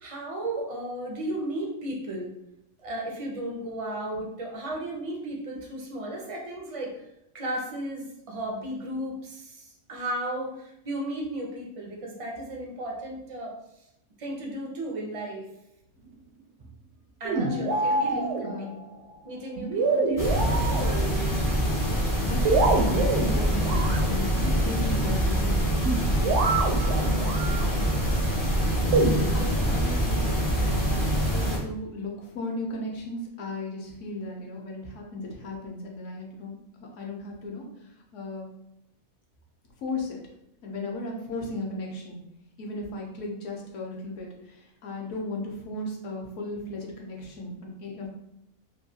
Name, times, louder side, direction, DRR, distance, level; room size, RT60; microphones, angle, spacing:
voice 1, 0.0-2.3 2.8-6.9 7.3-13.5 14.2-15.4 17.2-18.7 19.2-21.1, right 1 dB, 50° right, -1 dB, 0.4 m, -34 dB
voice 2, 17.3-18.8 22.2-27.8 29.3-38.5 39.8-40.2 40.6-42.2 42.6-48.1, left 2 dB, 65° left, 0 dB, 1.0 m, -36 dB
sound 1, 17.3-18.8 19.6-21.4 22.5-24.2 25.9-27.8 28.9-29.5, right 3 dB, 70° right, 0.8 m, -26 dB
sound 2, 20.2-31.6, equal, 30° left, 0.4 m, -25 dB
3.0 x 2.6 x 2.7 m, 0.81 s
omnidirectional pair, 1.5 m